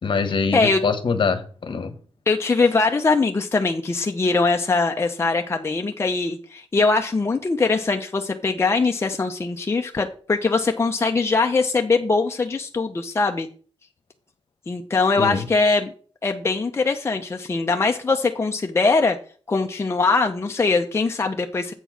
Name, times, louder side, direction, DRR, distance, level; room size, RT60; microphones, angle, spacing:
voice 1, 0.0-1.9 15.2-15.4, left 5 dB, 55° left, 9 dB, 1.1 m, -24 dB
voice 2, 2.3-13.5 14.7-15.9 16.2-19.2 19.5-21.7, left 3 dB, 25° left, 3 dB, 0.7 m, -21 dB
8.0 x 4.5 x 6.0 m, 0.42 s
wide cardioid pair, 130°, 10 cm